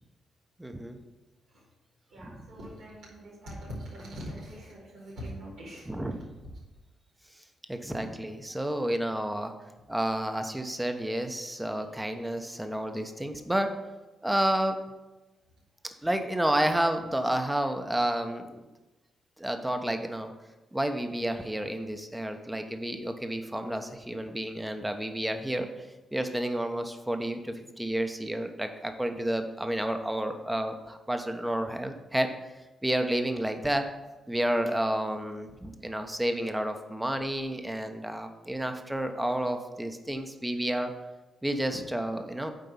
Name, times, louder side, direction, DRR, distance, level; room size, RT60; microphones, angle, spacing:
voice 1, 0.6-1.0 2.2-2.3 5.9-6.3 7.7-9.5 9.9-13.7 14.2-14.8 16.0-18.6 19.4-20.3 20.7-25.7 26.1-32.3 32.8-33.9 34.3-40.9 41.4-42.5, right 1 dB, 10° right, 6 dB, 1.0 m, -30 dB
voice 2, 2.1-5.9, equal, 85° right, -10 dB, 2.4 m, -42 dB
7.7 x 4.5 x 5.6 m, 1.1 s
hypercardioid pair, 45°, 0 cm